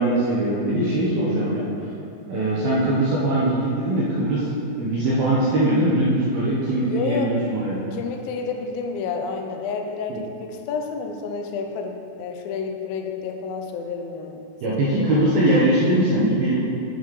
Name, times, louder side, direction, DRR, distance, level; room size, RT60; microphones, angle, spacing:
voice 1, 0.0-1.7 2.3-7.8 10.1-10.2 14.6-16.6, right 1 dB, 70° right, -7 dB, 2.7 m, -21 dB
voice 2, 6.9-7.3 7.9-14.5 14.8-15.1, left 5 dB, 80° left, 4 dB, 2.1 m, -30 dB
9.2 x 6.3 x 4.8 m, 2.6 s
omnidirectional pair, 4.9 m